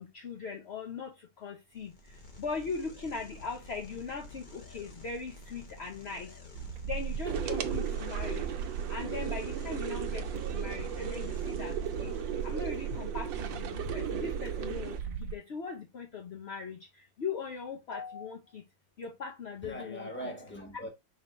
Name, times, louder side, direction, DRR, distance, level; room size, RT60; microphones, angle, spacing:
voice 1, 0.0-1.9 2.4-6.3 6.8-8.5 8.9-11.8 12.0-12.2 12.4-16.8 17.2-18.6 19.0-20.1, left 5 dB, 70° left, 0.6 m, -40 dB
sound 1, 1.7-13.1, left 2 dB, 35° left, 0.8 m, -50 dB
sound 2, 6.5-15.4, right 8 dB, 65° right, 0.9 m, -37 dB
sound 3, 7.2-15.0, right 8 dB, 80° right, 1.3 m, -37 dB
voice 2, 17.9-18.3 19.6-20.9, left 1 dB, 10° left, 1.0 m, -41 dB
5.3 x 3.3 x 2.9 m
omnidirectional pair, 2.0 m